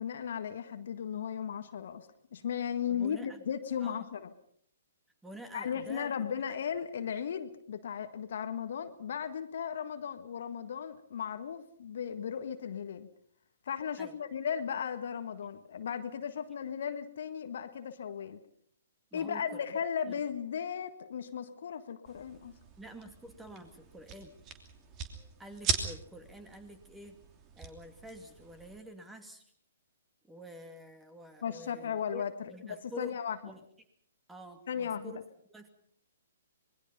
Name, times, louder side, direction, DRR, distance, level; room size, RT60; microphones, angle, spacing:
voice 1, 0.0-4.3 5.5-13.1 13.7-18.4 19.1-22.5 31.4-33.4 34.7-35.1, left 8 dB, 55° left, 8 dB, 1.6 m, -36 dB
voice 2, 2.9-3.4 3.8-4.1 5.2-6.1 6.5-6.6 14.0-14.2 19.1-19.6 20.1-20.2 22.8-24.4 25.4-27.2 27.6-29.4 30.2-33.2 33.4-33.6 34.3-35.2 35.5-35.7, equal, 5° right, 7 dB, 2.5 m, -48 dB
sound 1, 22.0-28.8, right 5 dB, 25° right, 3.0 m, -40 dB
26.5 x 21.0 x 5.5 m, 0.64 s
figure-of-eight pair, 125°, 0 cm